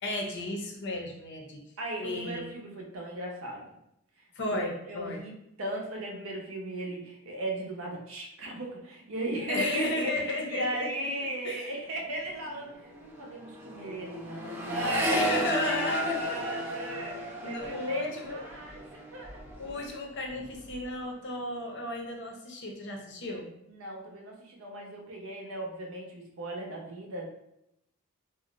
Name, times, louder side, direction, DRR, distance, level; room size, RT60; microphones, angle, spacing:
voice 1, 0.0-1.6 2.0-2.5 4.3-5.2 9.5-10.9 11.4-11.7 15.1-16.6 17.4-18.4 19.6-23.5, left 2 dB, 50° left, 1 dB, 0.6 m, -34 dB
voice 2, 1.8-3.6 4.5-19.3 23.7-27.3, right 1 dB, 65° right, 0 dB, 0.6 m, -36 dB
Accelerating revving vroom, 11.9-12.1 12.4-19.9 20.2-20.8, equal, 10° right, 0.3 m, -34 dB
2.5 x 2.0 x 3.8 m, 0.82 s
head